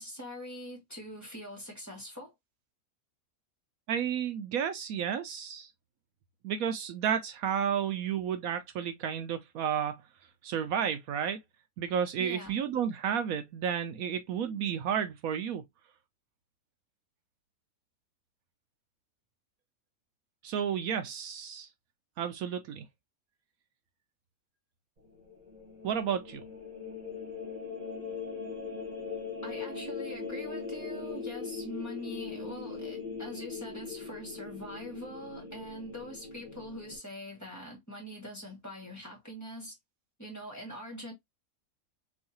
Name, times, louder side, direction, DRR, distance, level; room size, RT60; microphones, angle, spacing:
voice 1, 0.0-2.3 12.2-12.6 29.4-39.8 40.2-41.1, equal, 10° left, 1.9 m, -43 dB
voice 2, 3.9-5.7 6.4-10.0 10.4-11.4 11.8-15.6 20.4-21.7 22.2-22.9 25.8-26.4, right 8 dB, 75° right, 1.0 m, -32 dB
sound 1, 25.0-37.0, left 5 dB, 35° right, 1.8 m, -40 dB
3.5 x 3.1 x 2.8 m
omnidirectional pair, 1.6 m